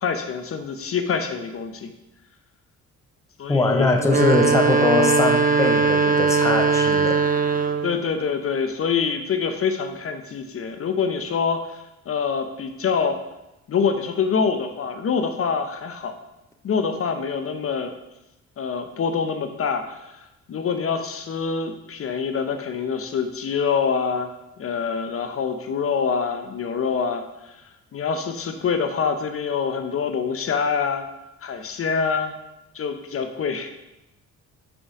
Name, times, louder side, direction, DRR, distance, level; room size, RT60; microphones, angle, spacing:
voice 1, 0.0-1.9 3.4-4.0 7.8-13.2 13.7-16.2 16.6-17.9 18.6-24.3 24.6-27.6 27.9-31.1 31.4-32.3 32.7-33.7, left 6 dB, 50° left, 7 dB, 0.7 m, -25 dB
voice 2, 3.5-7.2, left 3 dB, 10° left, 3 dB, 0.7 m, -21 dB
sound 1, 4.0-8.0, right 4 dB, 30° right, 0.6 m, -20 dB
5.1 x 4.9 x 5.8 m, 0.93 s
cardioid pair, 90°, 30 cm